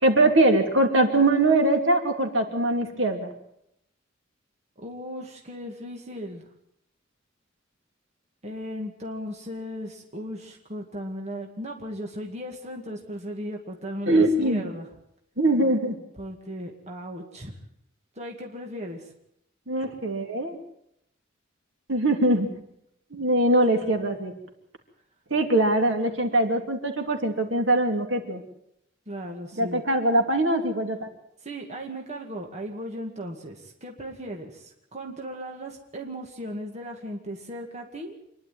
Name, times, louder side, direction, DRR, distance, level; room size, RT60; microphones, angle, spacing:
voice 1, 0.0-3.3 14.1-14.7 15.4-16.0 19.7-20.6 21.9-22.5 23.1-24.3 25.3-28.4 29.6-31.1, right 1 dB, 65° right, 4 dB, 2.8 m, -22 dB
voice 2, 4.8-6.5 8.4-14.9 16.2-17.5 18.2-19.1 29.1-29.8 31.4-38.2, equal, 35° right, 1 dB, 2.2 m, -37 dB
26.5 x 11.0 x 9.3 m, 0.78 s
head